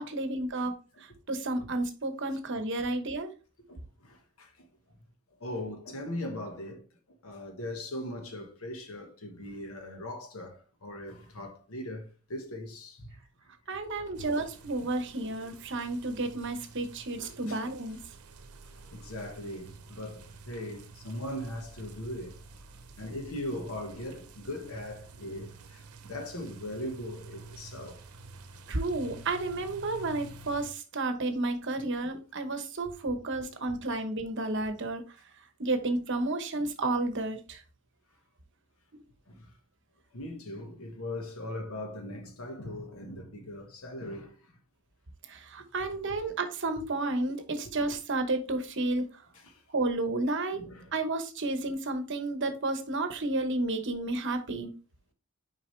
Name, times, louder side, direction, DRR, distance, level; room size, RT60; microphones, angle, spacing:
voice 1, 0.0-3.3 13.7-18.0 28.7-35.0 35.6-37.6 45.2-49.2 49.7-50.6 50.9-54.7, right 2 dB, 55° right, 1.0 m, -31 dB
voice 2, 4.0-4.5 5.4-6.8 7.2-13.2 17.2-17.6 18.9-22.4 23.0-28.0 31.7-31.8 39.3-39.5 40.1-44.3 49.4-49.6 50.5-50.9, left 1 dB, 70° left, 1.3 m, -39 dB
sound 1, 14.2-30.7, right 3 dB, 80° right, 0.8 m, -50 dB
6.3 x 5.0 x 3.2 m
head